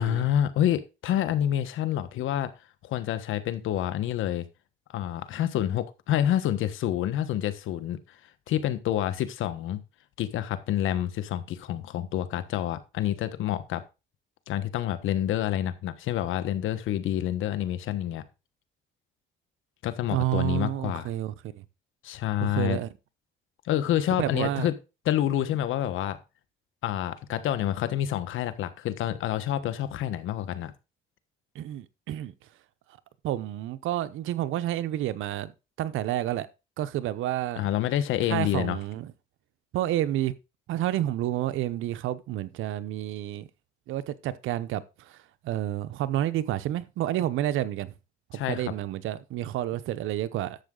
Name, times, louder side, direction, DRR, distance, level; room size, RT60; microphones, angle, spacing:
voice 1, 0.0-2.5 2.8-4.5 4.9-8.2 8.5-9.8 10.2-13.8 14.5-18.2 19.8-21.1 22.0-22.8 23.6-24.7 25.0-26.2 26.8-30.7 37.6-38.8 48.3-48.6, left 11 dB, 85° left, 1.3 m, -28 dB
voice 2, 20.1-21.6 22.4-22.9 24.1-24.7 31.5-32.3 33.2-35.5 35.8-36.5 36.8-37.6 38.3-39.1 39.7-40.3 40.7-43.5 43.9-47.9 48.3-50.6, right 13 dB, 90° right, 0.8 m, -30 dB
11.5 x 7.3 x 3.9 m
cardioid pair, 90°, 20 cm